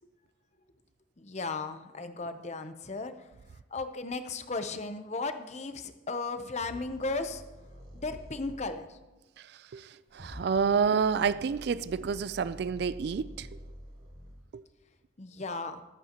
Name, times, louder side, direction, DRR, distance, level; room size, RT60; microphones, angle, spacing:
voice 1, 1.2-3.3 3.7-7.4 7.9-9.0 15.2-15.8, left 3 dB, 35° left, 0.7 m, -35 dB
sound 1, 6.6-8.6 10.1-14.4, equal, 85° right, 4.1 m, -48 dB
voice 2, 9.7-13.5 14.5-14.6, right 6 dB, 55° right, 0.3 m, -29 dB
22.0 x 8.4 x 2.9 m
head